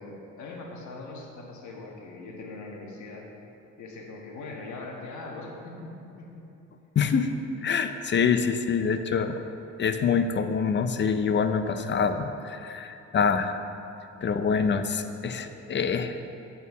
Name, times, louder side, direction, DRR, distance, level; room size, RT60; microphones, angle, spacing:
voice 1, 0.0-3.3 3.8-6.4, left 3 dB, 70° left, -1 dB, 1.4 m, -41 dB
voice 2, 7.0-7.3 7.6-9.4 9.8-13.6 14.2-16.3, left 6 dB, 40° left, 9 dB, 0.5 m, -26 dB
9.0 x 4.4 x 5.5 m, 2.9 s
cardioid pair, 90°, 30 cm